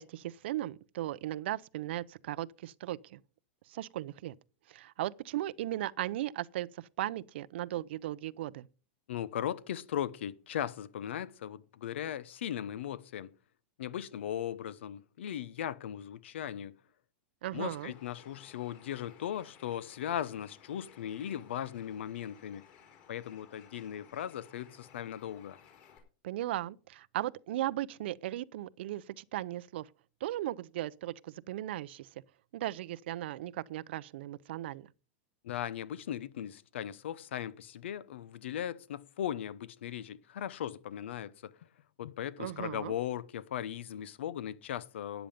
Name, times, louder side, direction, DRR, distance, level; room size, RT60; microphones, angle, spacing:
voice 1, 0.0-3.2 3.7-4.3 4.7-8.7 17.4-17.9 26.2-29.9 30.2-32.1 32.5-34.9 42.4-42.9, right 14 dB, 70° right, 0.6 m, -37 dB
voice 2, 9.1-13.3 13.8-16.8 17.5-22.7 23.1-25.6 35.4-41.5 42.0-45.3, left 10 dB, 90° left, 0.8 m, -38 dB
Bird, 17.7-26.0, left 8 dB, 40° left, 4.1 m, -58 dB
13.0 x 9.0 x 5.1 m
supercardioid pair, 160°, 6 cm